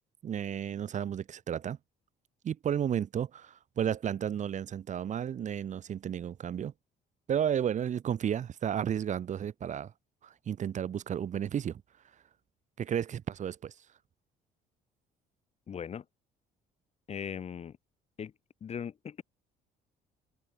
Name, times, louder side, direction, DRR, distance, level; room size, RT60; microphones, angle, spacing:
voice 1, 0.2-1.8 2.4-6.7 7.3-9.9 10.2-11.8 12.8-13.7, right 9 dB, 45° right, 1.3 m, -32 dB
voice 2, 15.7-16.0 17.1-17.8 18.2-18.3 18.6-19.2, left 7 dB, 40° left, 1.3 m, -39 dB
open air
cardioid pair, 110°, 17 cm